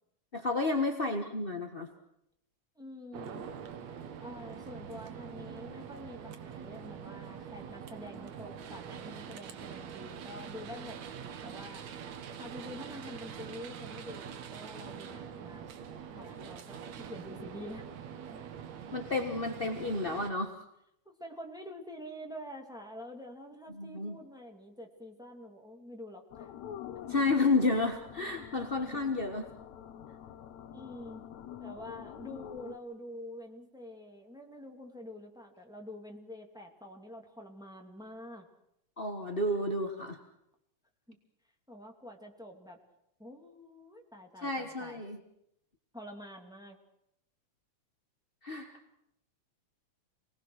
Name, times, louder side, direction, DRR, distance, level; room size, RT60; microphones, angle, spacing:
voice 1, 0.3-1.9 18.9-20.5 23.7-24.2 27.1-29.5 39.0-40.2 44.4-45.2 48.4-48.7, left 3 dB, 40° left, 4 dB, 0.8 m, -31 dB
voice 2, 2.8-3.5 4.2-11.8 12.4-15.7 16.2-17.9 21.0-26.5 30.7-31.2 31.6-38.5 41.1-41.2 41.7-42.8 43.2-45.0 45.9-46.8, left 1 dB, ahead, 2 dB, 2.3 m, -47 dB
sound 1, 3.1-20.3, right 7 dB, 70° right, 2.6 m, -44 dB
sound 2, 26.3-32.8, left 10 dB, 70° left, 2.3 m, -46 dB
27.5 x 19.5 x 6.5 m, 0.78 s
omnidirectional pair, 3.4 m